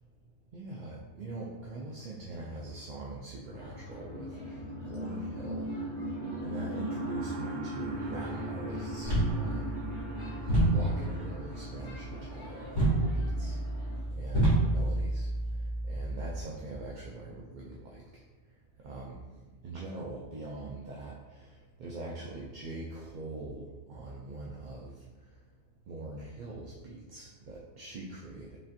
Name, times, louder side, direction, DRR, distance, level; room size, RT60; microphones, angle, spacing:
voice 1, 0.5-5.7 6.4-9.8 10.7-12.7 13.1-13.6 14.2-15.3 15.8-18.2 18.8-19.3 19.6-25.0 25.9-28.6, right 2 dB, 55° right, -4 dB, 0.5 m, -43 dB
sound 1, 3.5-14.0, right 1 dB, 90° left, 2.0 m, -38 dB
sound 2, 9.0-16.4, right 1 dB, 40° right, 1.6 m, -30 dB
5.3 x 2.5 x 2.6 m, 1.2 s
omnidirectional pair, 1.1 m